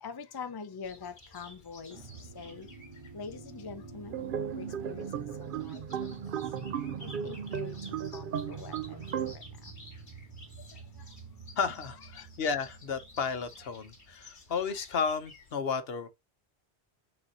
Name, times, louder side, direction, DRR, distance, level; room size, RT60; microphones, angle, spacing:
voice 1, 0.0-2.1 2.3-2.7 3.1-4.2 4.5-6.1 7.0-7.7 8.1-9.4 10.7-10.8 12.1-12.2, left 5 dB, 25° left, 0.6 m, -44 dB
sound 1, 0.8-15.5, left 2 dB, 45° left, 2.4 m, -54 dB
sound 2, 1.9-14.1, right 5 dB, 30° right, 1.0 m, -49 dB
sound 3, 4.1-9.3, right 8 dB, 60° right, 0.7 m, -36 dB
voice 2, 11.6-16.1, left 5 dB, 65° left, 1.0 m, -33 dB
9.3 x 4.2 x 2.7 m
omnidirectional pair, 1.1 m